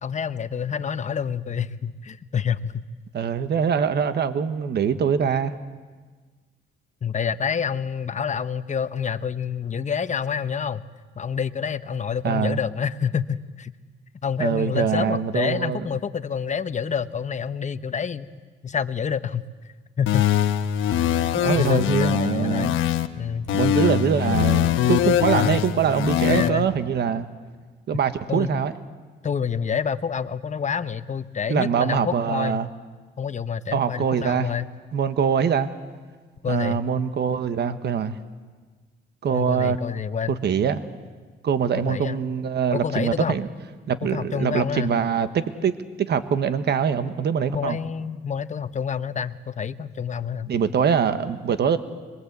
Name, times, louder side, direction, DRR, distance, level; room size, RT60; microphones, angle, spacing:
voice 1, 0.0-2.8 7.0-10.8 11.2-13.7 14.2-18.3 18.6-20.3 21.4-22.8 23.2-23.5 25.3-25.6 26.3-26.7 28.3-28.6 29.2-32.6 33.2-34.7 36.4-36.8 39.3-40.4 41.7-42.2 42.7-43.4 44.0-44.9 47.5-50.5, left 7 dB, 35° left, 12 dB, 0.9 m, -28 dB
voice 2, 3.1-5.5 12.2-12.6 14.4-15.8 21.3-22.7 23.5-27.3 27.9-28.7 31.5-32.7 33.7-34.5 34.9-35.7 36.5-38.2 39.2-39.8 40.4-40.8 41.4-43.5 43.9-47.8 50.5-51.8, right 7 dB, 55° right, 11 dB, 1.4 m, -23 dB
sound 1, 20.1-23.1 23.5-26.5, left 10 dB, 80° left, 1.2 m, -22 dB
25.5 x 21.5 x 8.2 m, 1.4 s
cardioid pair, 90°, 20 cm